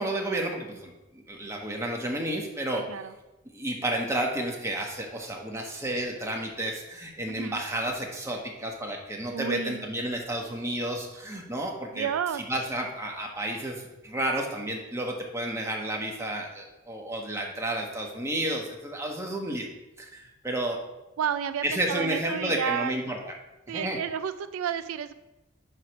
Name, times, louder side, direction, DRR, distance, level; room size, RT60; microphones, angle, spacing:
voice 1, 0.0-2.9 3.5-12.1 12.5-19.7 20.0-20.8 21.6-23.3 23.7-24.0, right 1 dB, 15° right, 0 dB, 1.2 m, -31 dB
voice 2, 7.3-7.6 9.3-9.8 11.9-12.4 21.2-23.0 23.7-25.1, right 8 dB, 80° right, 12 dB, 0.3 m, -31 dB
9.7 x 3.3 x 6.0 m, 1.0 s
head